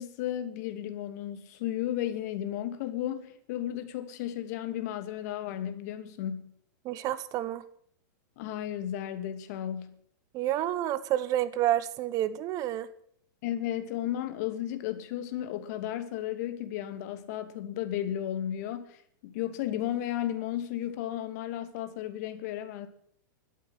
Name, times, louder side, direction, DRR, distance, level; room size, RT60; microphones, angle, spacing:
voice 1, 0.0-6.5 8.4-10.0 13.4-22.9, left 11 dB, 50° left, 2.5 m, -34 dB
voice 2, 6.8-7.6 10.3-12.9, right 13 dB, 35° right, 1.0 m, -29 dB
13.0 x 12.5 x 7.5 m
hypercardioid pair, 135°, 11 cm